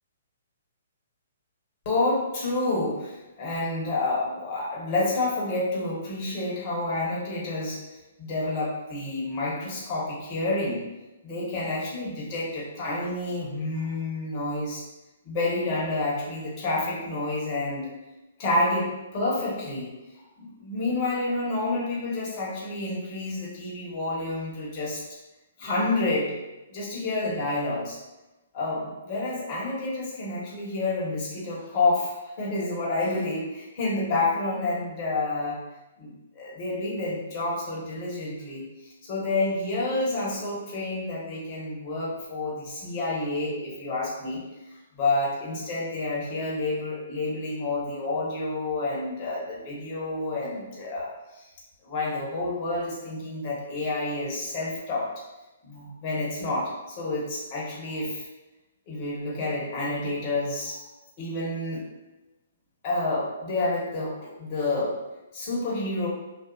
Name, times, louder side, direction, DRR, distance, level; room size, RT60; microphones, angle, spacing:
voice 1, 1.8-10.8 11.2-14.9 15.2-17.9 18.4-19.9 20.4-25.0 25.6-26.3 26.7-28.0 28.5-35.6 36.0-44.4 44.7-51.5 51.8-55.1 55.6-58.3 58.9-60.8 61.2-61.8 62.8-65.0 65.3-66.1, left 2 dB, 40° left, -5 dB, 1.0 m, -29 dB
2.5 x 2.4 x 2.3 m, 1.0 s
hypercardioid pair, 140°, 0 cm